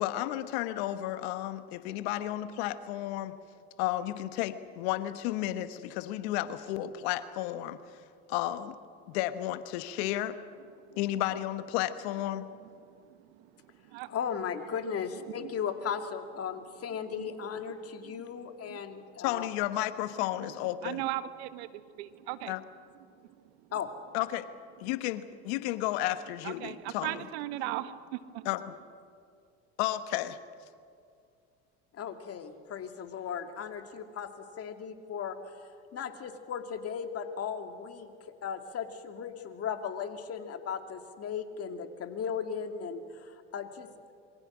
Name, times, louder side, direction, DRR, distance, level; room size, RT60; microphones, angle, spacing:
voice 1, 0.0-3.3 3.8-7.8 8.3-8.8 9.1-10.4 11.0-12.4 19.2-21.0 22.5-22.6 24.1-24.5 24.8-27.3 28.4-28.7 29.8-30.4, left 14 dB, 75° left, 11 dB, 1.4 m, -32 dB
voice 2, 13.1-14.1 15.4-15.5 17.2-17.3 18.7-18.8 20.8-22.5 26.4-28.5, right 15 dB, 75° right, 12 dB, 1.3 m, -38 dB
voice 3, 14.1-19.5 23.7-23.9 31.9-35.5 35.9-38.1 38.4-43.9, left 7 dB, 45° left, 6 dB, 2.6 m, -36 dB
27.0 x 24.0 x 6.3 m, 2.3 s
hypercardioid pair, 75°, 33 cm